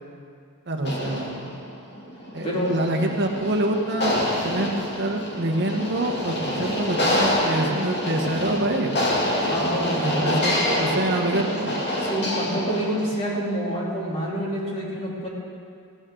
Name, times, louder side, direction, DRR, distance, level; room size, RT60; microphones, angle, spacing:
voice 1, 0.7-1.5 2.3-4.2 4.4-4.7 5.0-8.9 9.6-11.8, right 1 dB, 50° right, 2 dB, 1.2 m, -26 dB
sound 1, 0.8-13.1, left 1 dB, 50° left, 2.5 m, -26 dB
voice 2, 2.4-2.7 9.4-10.1 12.0-15.3, equal, 25° left, -5 dB, 3.1 m, -27 dB
16.5 x 16.0 x 3.8 m, 2.3 s
head